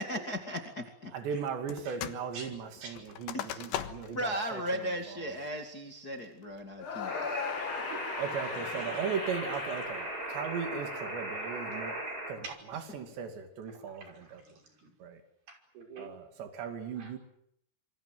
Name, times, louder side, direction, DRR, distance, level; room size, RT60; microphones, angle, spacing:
voice 1, 0.0-1.1 3.3-3.7 4.1-7.1, equal, 30° left, 4 dB, 2.0 m, -36 dB
voice 2, 1.1-4.6 5.1-5.2 8.2-12.0 12.3-14.4 15.0-15.2 16.0-17.2, right 6 dB, 90° right, 7 dB, 4.8 m, -37 dB
sound 1, 1.7-2.3 2.5-4.2 4.7-4.8 5.3-5.7 6.2-6.6, left 11 dB, 85° left, 3.6 m, -39 dB
sound 2, 6.8-11.0, left 6 dB, 55° left, 1.5 m, -39 dB
sound 3, 7.1-12.3, right 1 dB, 20° right, 6.2 m, -38 dB
voice 3, 7.6-8.0 8.4-9.2 11.3-11.5 12.4-12.6 13.7-14.9 15.5-16.1 17.0-17.1, right 4 dB, 65° right, 3 dB, 7.5 m, -47 dB
27.0 x 24.0 x 7.8 m, 0.71 s
omnidirectional pair, 4.9 m